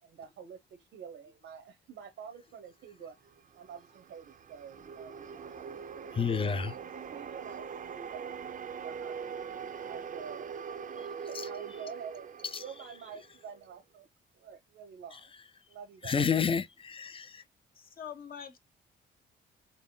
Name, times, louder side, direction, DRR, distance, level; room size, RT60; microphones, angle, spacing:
voice 1, 0.0-6.1 6.7-8.3 8.8-9.4 9.8-10.5 10.9-14.1 14.3-15.3 15.7-16.3, right 7 dB, 75° right, 0.9 m, -48 dB
sound 1, 3.3-13.6, right 6 dB, 40° right, 0.5 m, -42 dB
voice 2, 6.1-6.7 11.0-11.1 12.5-12.6 16.0-17.4, left 6 dB, 25° left, 0.5 m, -30 dB
voice 3, 17.8-18.6, left 8 dB, 45° left, 1.0 m, -44 dB
3.9 x 3.1 x 3.8 m
cardioid pair, 90°, 20 cm